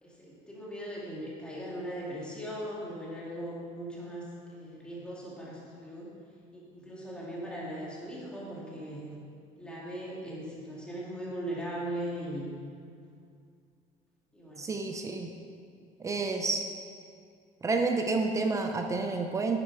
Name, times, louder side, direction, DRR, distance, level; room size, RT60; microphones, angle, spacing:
voice 1, 0.0-6.1 6.5-9.2 9.6-12.5 14.3-14.7, right 1 dB, 5° left, -6 dB, 2.4 m, -39 dB
voice 2, 14.6-15.3 16.0-16.7 17.6-19.6, right 3 dB, 20° right, 4 dB, 0.6 m, -29 dB
9.9 x 9.8 x 4.8 m, 2.4 s
cardioid pair, 165°, 15 cm